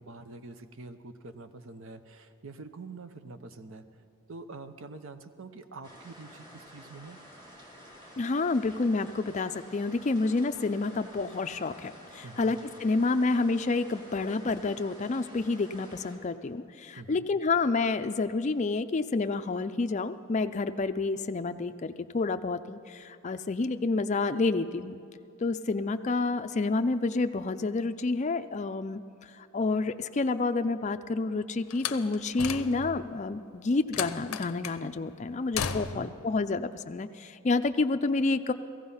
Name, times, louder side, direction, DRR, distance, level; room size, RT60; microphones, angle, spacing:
voice 1, 0.0-3.8 4.3-7.2 12.2-12.6 17.0-17.3 35.8-36.1, right 3 dB, 65° right, 9 dB, 0.8 m, -45 dB
sound 1, 5.8-16.2, equal, 20° right, 2.0 m, -50 dB
voice 2, 8.2-25.0 25.4-38.5, left 3 dB, 35° left, 9 dB, 0.4 m, -29 dB
Slam, 31.7-33.1 33.9-34.8 35.5-36.2, left 7 dB, 80° left, 0.6 m, -35 dB
16.5 x 15.0 x 5.6 m, 2.5 s
head